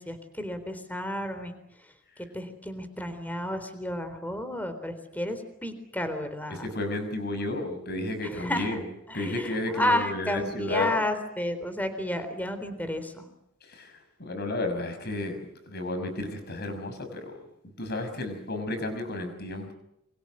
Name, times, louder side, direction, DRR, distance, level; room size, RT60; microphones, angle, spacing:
voice 1, 0.0-1.6 2.2-6.7 8.2-8.8 9.1-13.2, left 1 dB, 10° left, 9 dB, 3.9 m, -32 dB
voice 2, 6.5-8.8 9.1-10.9 13.6-13.9 14.2-17.4 17.8-19.7, left 2 dB, 50° left, 8 dB, 6.2 m, -32 dB
28.5 x 26.0 x 6.5 m, 0.84 s
head